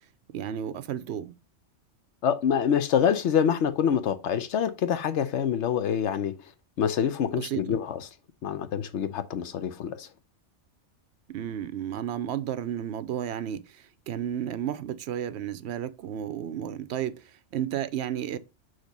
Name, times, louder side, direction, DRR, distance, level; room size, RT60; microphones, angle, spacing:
voice 1, 0.3-1.3 7.4-7.8 11.3-13.6 14.1-17.2 17.5-18.4, right 10 dB, 70° right, 0.8 m, -32 dB
voice 2, 2.2-6.3 6.8-8.0 8.4-10.1, left 8 dB, 75° left, 1.0 m, -26 dB
6.5 x 3.2 x 5.2 m
omnidirectional pair, 1.2 m